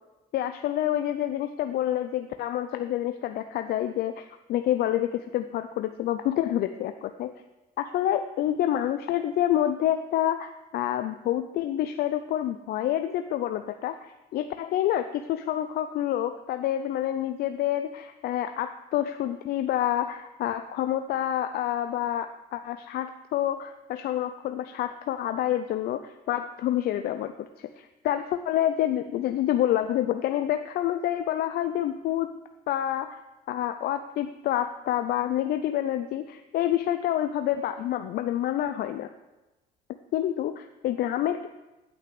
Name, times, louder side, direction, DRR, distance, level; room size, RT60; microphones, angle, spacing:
voice 1, 0.3-7.3 7.8-27.5 27.8-32.3 32.7-33.2 33.5-39.1 40.1-41.5, left 12 dB, 65° left, 9 dB, 0.5 m, -28 dB
8.8 x 5.8 x 7.0 m, 1.0 s
cardioid pair, 110°, 17 cm